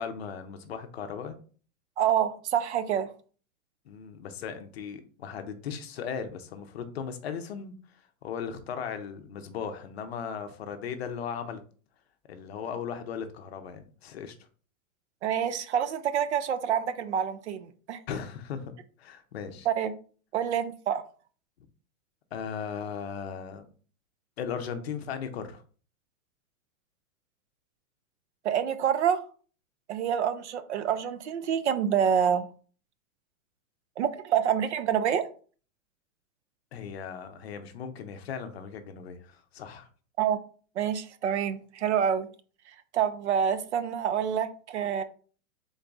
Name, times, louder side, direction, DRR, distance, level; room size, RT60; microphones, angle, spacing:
voice 1, 0.0-1.4 3.9-7.7 8.2-11.6 12.3-14.3 18.1-18.7 19.0-19.7 22.3-23.7 24.4-25.6 36.7-39.9, left 7 dB, 45° left, 0.6 m, -37 dB
voice 2, 2.0-3.1 15.2-18.0 19.7-19.9 20.3-21.0 28.4-29.2 29.9-32.5 34.0-35.3 40.2-40.4 40.8-42.3 42.9-45.0, right 8 dB, 55° right, 0.5 m, -27 dB
3.9 x 3.5 x 3.8 m
supercardioid pair, 175°, 42 cm